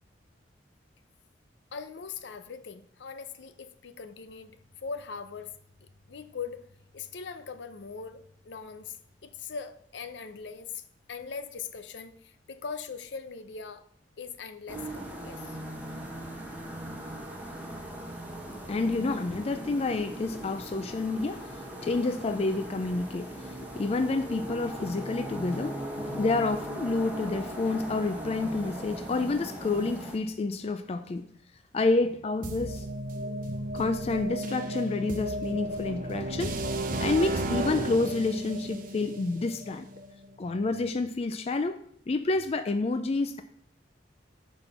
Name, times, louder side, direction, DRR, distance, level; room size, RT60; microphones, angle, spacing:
voice 1, 1.7-5.5 5.8-6.7 6.9-10.8 11.1-13.8 14.2-15.6, left 5 dB, 75° left, 10 dB, 0.6 m, -41 dB
sound 1, 14.7-30.2, right 1 dB, 10° right, 1.3 m, -39 dB
voice 2, 18.7-31.2 31.7-32.9 33.7-36.6 37.0-39.9 40.4-43.4, left 3 dB, 35° left, 9 dB, 0.4 m, -29 dB
sound 2, 32.4-40.3, right 1 dB, 50° right, 0.7 m, -34 dB
6.2 x 5.4 x 5.6 m, 0.66 s
head